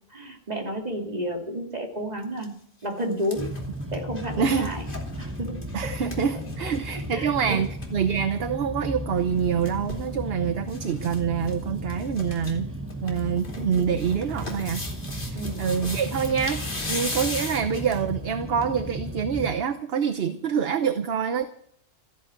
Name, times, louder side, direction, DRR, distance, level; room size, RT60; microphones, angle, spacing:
voice 1, 0.1-2.5 2.8-3.5 3.9-4.8 5.2-5.9 6.3-7.6 10.1-10.3 15.3-15.7, equal, 30° right, 2 dB, 2.8 m, -32 dB
sound 1, 2.2-2.4 2.8-7.1 7.4-7.5 7.6-7.9 9.2-10.1 10.7-11.2 11.4-11.5 11.9-12.5 12.9-18.1 18.6-18.7, left 2 dB, 40° left, 3.0 m, -37 dB
sound 2, 3.3-19.5, equal, 10° right, 1.0 m, -35 dB
voice 2, 4.4-4.7 5.7-12.7 13.0-14.9 15.1-21.5, right 7 dB, 50° right, 10 dB, 1.0 m, -26 dB
14.5 x 10.5 x 8.9 m, 0.66 s
omnidirectional pair, 1.4 m